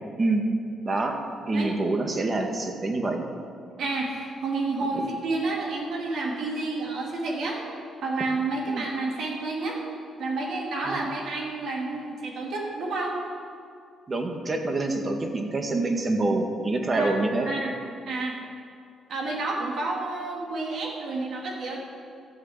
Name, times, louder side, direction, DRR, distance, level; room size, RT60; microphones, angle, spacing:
voice 1, 0.2-0.5 0.8-1.2 1.5-3.2 4.9-5.1 8.7-8.9 10.9-11.1 14.1-17.5, right 2 dB, 30° right, 3 dB, 1.9 m, -26 dB
voice 2, 3.8-7.6 8.0-9.8 10.2-13.1 16.9-17.1 17.5-17.7 18.1-18.4 19.1-21.8, right 3 dB, 70° right, -2 dB, 3.6 m, -30 dB
13.5 x 8.2 x 8.3 m, 2.3 s
cardioid pair, 90°, 0 cm